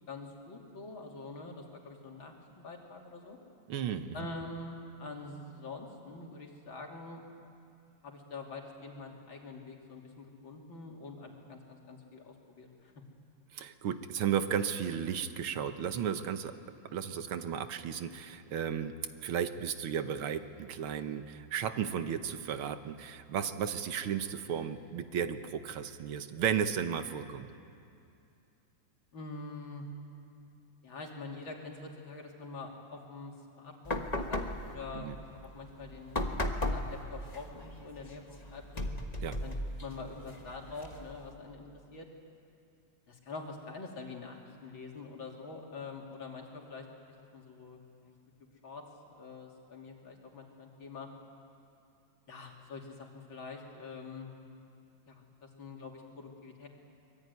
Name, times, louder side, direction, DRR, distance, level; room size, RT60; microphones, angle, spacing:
voice 1, 0.1-3.4 4.1-7.2 8.0-12.9 23.4-23.6 29.1-29.8 30.8-38.9 39.4-39.5 39.8-41.6 41.9-42.1 43.1-46.9 47.3-48.2 48.6-48.9 49.2-51.1 52.3-54.3 55.1-56.7, left 3 dB, 65° left, 0 dB, 3.6 m, -45 dB
voice 2, 3.7-4.3 13.5-16.6 16.9-27.5 34.9-35.2 39.2-39.4, right 8 dB, 80° right, 9 dB, 1.9 m, -34 dB
sound 1, 33.8-41.3, left 1 dB, 20° left, 1.2 m, -37 dB
24.5 x 22.5 x 9.6 m, 2.6 s
omnidirectional pair, 2.3 m